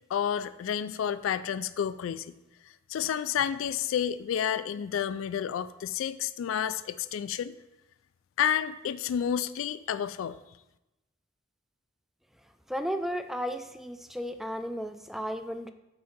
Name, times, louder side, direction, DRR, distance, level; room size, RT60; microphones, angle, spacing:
voice 1, 0.1-2.3 2.9-7.5 8.4-10.4, left 9 dB, 80° left, 14 dB, 0.3 m, -30 dB
voice 2, 12.7-15.7, equal, ahead, 9 dB, 0.4 m, -34 dB
8.5 x 3.7 x 5.8 m, 0.95 s
head